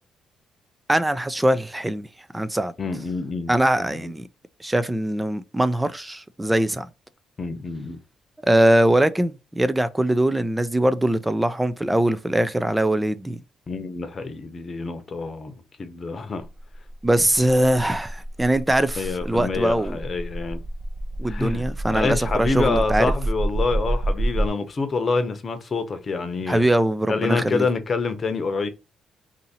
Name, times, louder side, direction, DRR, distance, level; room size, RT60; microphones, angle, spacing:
voice 1, 0.9-2.1 2.3-2.7 3.5-4.2 4.6-6.9 8.5-13.4 17.0-20.0 21.2-23.1 26.5-27.7, right 1 dB, 10° right, 0.4 m, -22 dB
voice 2, 2.8-3.5 3.8-4.1 7.4-8.0 13.7-15.5 15.8-16.4 19.0-20.6 21.3-21.6 21.9-26.7 27.1-28.7, left 4 dB, 40° left, 0.8 m, -27 dB
sound 1, 16.5-24.5, right 1 dB, 30° right, 1.2 m, -28 dB
2.8 x 2.7 x 4.0 m
cardioid pair, 90°, 0 cm